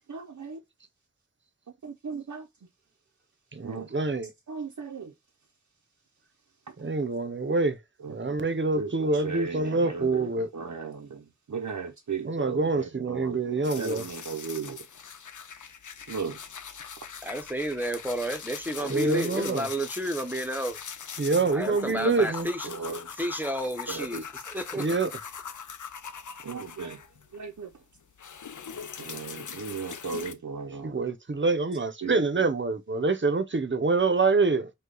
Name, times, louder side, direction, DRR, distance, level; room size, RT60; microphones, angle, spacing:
voice 1, 0.1-0.6 1.8-2.5 3.6-3.9 4.5-5.1 8.0-8.4 8.7-14.8 16.1-16.4 18.8-18.9 21.3-21.5 21.9-22.0 22.7-23.1 23.9-24.2 26.4-27.0 27.3-27.7 29.0-31.0 32.0-32.2, right 5 dB, 85° right, 0.6 m, -36 dB
voice 2, 3.5-4.3 6.8-7.8 8.1-10.5 12.2-14.0 18.9-19.7 21.2-22.5 24.8-25.1 30.8-34.7, right 3 dB, 40° right, 0.7 m, -26 dB
sound 1, 13.6-27.4 27.7-30.3, left 7 dB, 90° left, 0.5 m, -41 dB
voice 3, 17.2-20.8 21.5-22.7 23.2-24.9, equal, 5° right, 0.8 m, -31 dB
5.2 x 2.3 x 3.9 m
wide cardioid pair, 45°, 30 cm